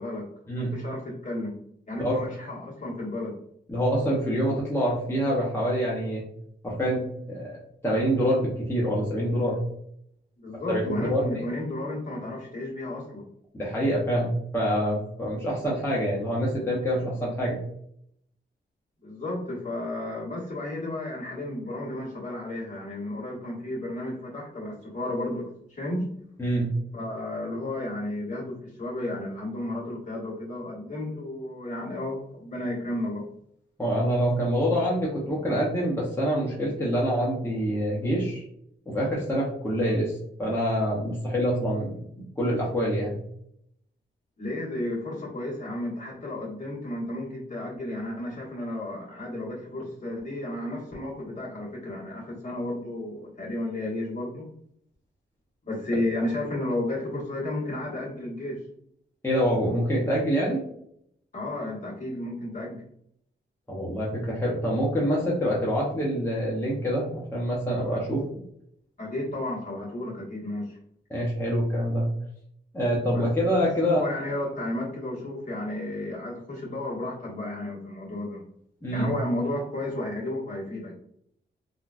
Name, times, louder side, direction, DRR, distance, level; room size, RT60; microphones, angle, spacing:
voice 1, 0.5-1.6 1.9-3.3 10.4-13.3 19.0-26.1 26.9-33.2 44.4-54.5 55.6-58.6 61.3-62.8 67.9-68.0 69.0-70.8 73.1-73.3 73.6-78.4 78.9-80.9, left 1 dB, 40° left, -5 dB, 1.3 m, -33 dB
voice 2, 3.7-6.2 6.6-7.5 7.8-9.6 10.7-11.4 13.5-17.6 26.4-26.7 33.8-38.4 38.9-40.1 40.4-42.0 42.4-43.2 59.2-60.6 63.7-68.2 71.1-72.1 72.7-74.0 78.8-79.1, equal, 10° left, -5 dB, 0.7 m, -26 dB
3.7 x 2.2 x 2.4 m, 0.72 s
wide cardioid pair, 135°, 20 cm